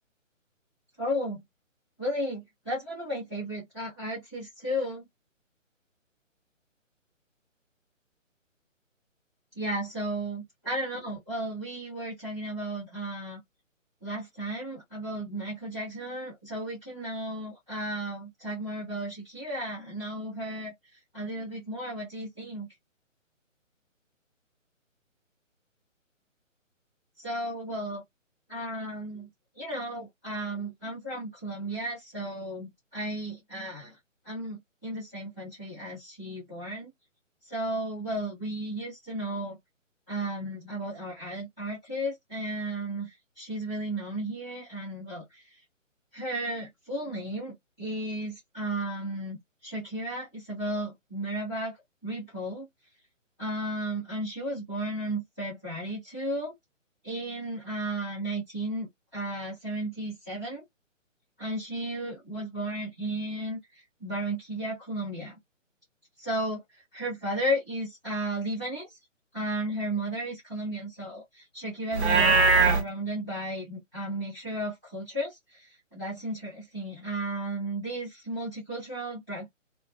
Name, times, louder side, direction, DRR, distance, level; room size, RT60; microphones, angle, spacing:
voice 1, 1.0-1.4 2.0-5.1 9.5-13.4 14.0-20.7 21.1-22.7 27.2-28.0 28.5-29.3 29.5-34.0 34.2-36.9 37.4-39.6 40.1-45.6 46.1-51.7 52.0-52.7 53.4-56.5 57.0-60.6 61.4-65.4 66.2-69.0 69.3-79.6, right 1 dB, 5° right, 0.6 m, -34 dB
Livestock farm animals working animals, 71.9-72.8, right 3 dB, 55° right, 0.6 m, -20 dB
2.7 x 2.3 x 2.2 m
hypercardioid pair, 165°, 39 cm